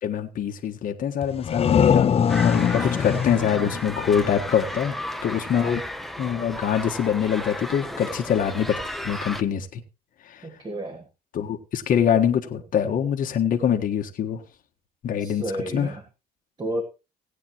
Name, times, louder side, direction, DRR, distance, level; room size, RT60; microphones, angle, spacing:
voice 1, 0.0-2.1 2.4-5.8 6.2-9.8 10.2-10.5 11.3-14.4 15.0-15.4 15.7-15.9, left 8 dB, 55° left, 1.4 m, -24 dB
sound 1, 1.2-4.8, left 8 dB, 35° left, 0.6 m, -23 dB
sound 2, 2.3-9.4, left 1 dB, ahead, 0.9 m, -34 dB
voice 2, 10.4-11.1 15.2-16.0 16.6-16.8, right 1 dB, 25° right, 2.1 m, -32 dB
17.0 x 9.1 x 3.0 m
cardioid pair, 110°, 17 cm